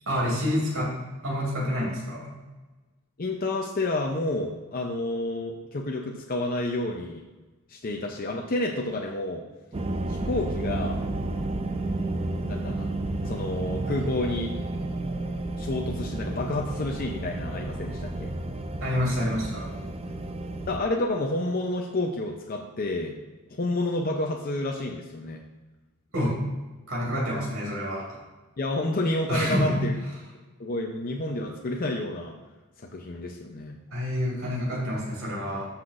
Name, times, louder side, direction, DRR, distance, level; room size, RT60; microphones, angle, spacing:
voice 1, 0.1-0.9 1.2-2.3 18.8-19.7 26.1-26.3 26.9-28.1 29.3-29.8 33.9-35.7, equal, 70° right, -4 dB, 2.8 m, -27 dB
voice 2, 3.2-7.2 7.7-9.4 10.1-11.0 12.4-12.9 13.2-14.5 15.6-18.3 20.7-23.1 23.5-25.4 28.6-29.9 30.6-32.3 32.8-33.8, left 2 dB, 45° left, 1 dB, 0.6 m, -29 dB
sound 1, 9.7-20.8, right 2 dB, 30° right, 0.5 m, -31 dB
13.5 x 5.8 x 2.5 m, 1.2 s
head